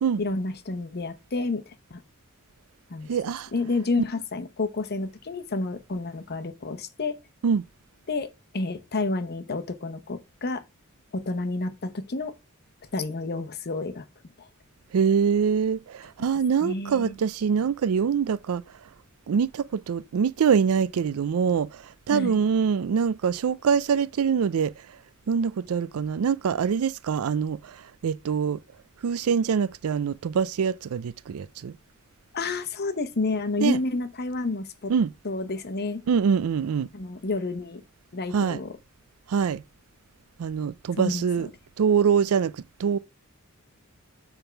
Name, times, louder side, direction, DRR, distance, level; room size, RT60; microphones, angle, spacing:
voice 1, 0.2-2.0 2.9-3.1 3.5-7.2 8.1-8.3 8.5-10.6 11.1-12.3 12.9-14.1 14.4-14.5 16.6-17.2 22.1-22.4 32.3-34.9 35.2-36.0 36.9-37.8 38.1-38.7 41.0-41.3, left 3 dB, 45° left, 0.9 m, -30 dB
voice 2, 3.1-3.5 7.4-7.6 14.9-18.6 19.3-24.7 25.3-28.6 29.0-31.8 33.6-33.8 34.9-35.1 36.1-36.9 38.3-38.6 39.3-39.6 40.4-41.5 41.8-43.0, right 6 dB, 75° right, 0.4 m, -24 dB
7.1 x 3.6 x 5.7 m
head